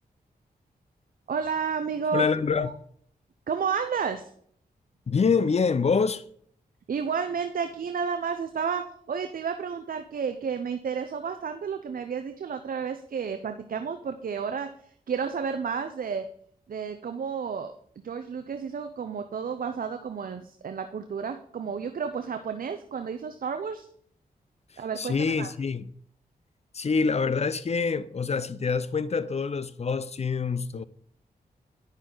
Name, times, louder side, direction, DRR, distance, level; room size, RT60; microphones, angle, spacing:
voice 1, 1.3-2.2 2.6-2.7 3.5-4.3 6.9-8.8 9.1-16.2 16.7-17.7 18.0-23.9 24.8-25.5, right 6 dB, 60° right, 0.6 m, -31 dB
voice 2, 2.1-2.7 5.1-6.2 25.0-25.9 26.7-30.8, left 5 dB, 40° left, 0.5 m, -26 dB
9.6 x 6.3 x 3.9 m
cardioid pair, 55°, 16 cm